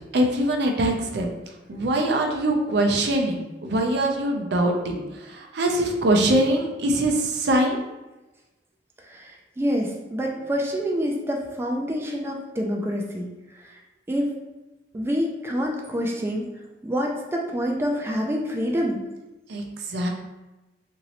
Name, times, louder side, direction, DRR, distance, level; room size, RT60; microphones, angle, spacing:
voice 1, 0.1-1.3 1.7-7.8 19.5-20.1, right 1 dB, 70° right, 2 dB, 0.5 m, -23 dB
voice 2, 9.0-13.3 13.6-13.8 14.1-14.3 14.9-16.5 16.8-19.0, equal, 15° right, 0 dB, 0.3 m, -27 dB
3.0 x 2.6 x 2.8 m, 1.1 s
head